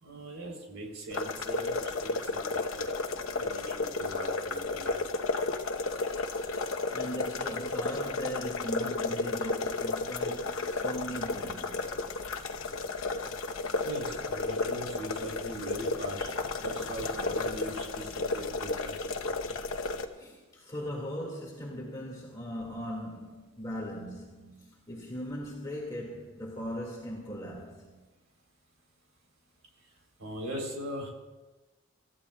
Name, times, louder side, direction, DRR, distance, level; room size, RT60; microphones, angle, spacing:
voice 1, 0.0-5.0 13.8-19.0 30.2-31.1, right 1 dB, 80° right, 3.5 m, -40 dB
sound 1, 1.1-20.1, left 3 dB, 80° left, 1.0 m, -33 dB
voice 2, 6.6-12.1 20.1-28.0, equal, 20° left, 2.0 m, -39 dB
28.0 x 14.0 x 2.3 m
head